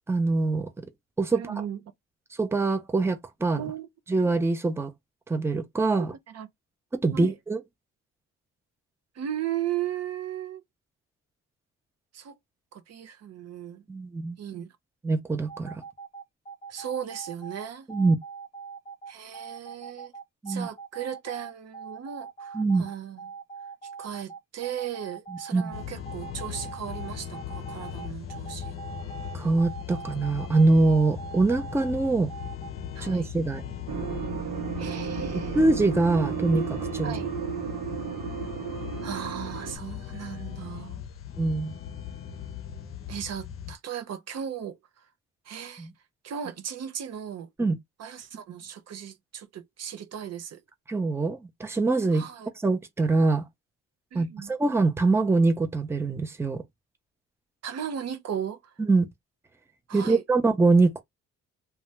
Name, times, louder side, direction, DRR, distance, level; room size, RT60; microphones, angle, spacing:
voice 1, 0.1-0.7 1.2-1.5 2.4-3.7 4.1-4.9 5.3-6.1 6.9-7.6 13.9-14.4 15.0-15.8 17.9-18.2 20.4-20.7 22.5-22.8 25.5-25.7 29.3-32.3 33.0-33.6 35.5-37.1 41.4-41.8 45.8-45.9 47.6-47.7 50.9-52.2 52.6-53.4 54.1-56.6 58.8-59.1 59.9-61.0, right 3 dB, 10° right, 0.6 m, -24 dB
voice 2, 1.3-1.8 3.5-3.9 6.0-6.5 7.1-7.3 9.1-10.6 12.1-12.4 12.7-13.8 14.4-14.7 16.7-17.9 19.1-20.1 20.5-23.2 23.8-28.8 32.9-33.3 34.8-35.6 37.0-37.3 39.0-41.0 43.1-45.1 45.4-45.9 46.2-47.5 48.0-50.6 52.1-52.5 54.1-54.5 57.6-58.8 59.9-60.2, right 9 dB, 55° right, 0.6 m, -36 dB
sound 1, 15.5-32.7, right 6 dB, 25° left, 0.9 m, -42 dB
sound 2, 25.7-43.8, left 9 dB, 45° left, 0.6 m, -38 dB
sound 3, 33.9-39.8, right 7 dB, 90° right, 1.0 m, -33 dB
2.7 x 2.3 x 3.1 m
cardioid pair, 90°, 30 cm